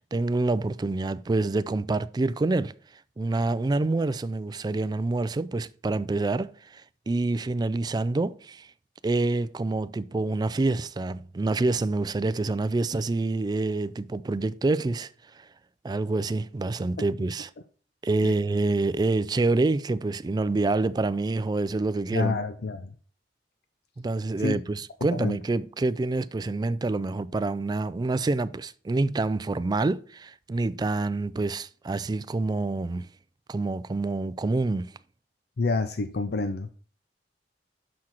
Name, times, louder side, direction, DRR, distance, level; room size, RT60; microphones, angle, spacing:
voice 1, 0.1-2.7 3.2-8.7 9.0-15.1 15.4-15.5 15.8-17.5 18.0-22.4 24.0-33.1 33.5-34.9, right 2 dB, 25° right, 0.3 m, -27 dB
voice 2, 22.1-22.9 24.4-24.6 25.1-25.4 35.6-36.7, left 3 dB, 65° left, 0.5 m, -28 dB
6.3 x 5.9 x 4.3 m
head